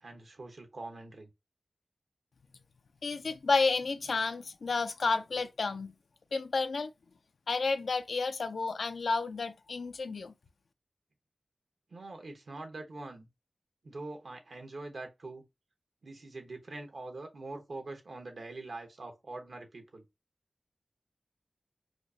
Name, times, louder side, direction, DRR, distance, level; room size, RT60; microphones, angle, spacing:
voice 1, 0.0-1.3 11.9-13.3 13.8-15.4 16.0-20.0, right 2 dB, 80° right, 1.0 m, -44 dB
voice 2, 3.0-5.9 6.3-6.9 7.5-10.3, left 4 dB, 90° left, 0.4 m, -31 dB
4.8 x 2.1 x 2.7 m
wide cardioid pair, 55°, 0 cm